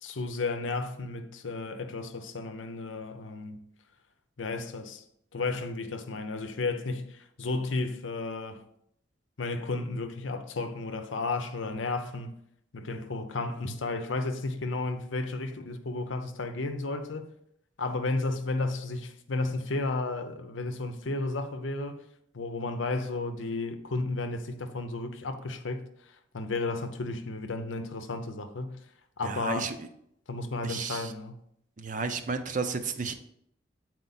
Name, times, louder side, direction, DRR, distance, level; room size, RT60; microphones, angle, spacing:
voice 1, 0.0-3.6 4.4-5.0 5.3-8.6 9.4-12.3 12.7-17.3 17.8-22.0 22.3-25.9 26.3-28.8 29.2-29.7 30.3-31.4, left 3 dB, 90° left, 0.7 m, -33 dB
voice 2, 29.2-29.7 30.6-31.1 31.8-33.2, right 4 dB, 40° right, 0.6 m, -32 dB
8.2 x 4.5 x 4.1 m
head